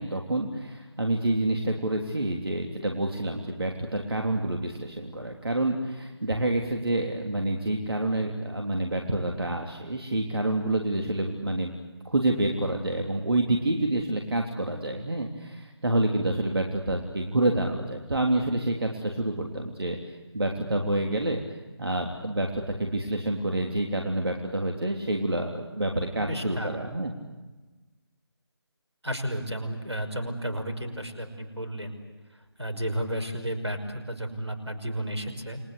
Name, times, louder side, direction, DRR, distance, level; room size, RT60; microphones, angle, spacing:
voice 1, 0.0-11.8 12.0-21.4 21.8-27.1, right 1 dB, 65° right, 2 dB, 3.4 m, -28 dB
voice 2, 26.2-26.9 29.0-31.9 32.6-35.6, equal, 80° right, 7 dB, 5.6 m, -32 dB
29.5 x 21.0 x 8.4 m, 1.2 s
figure-of-eight pair, 155°, 14 cm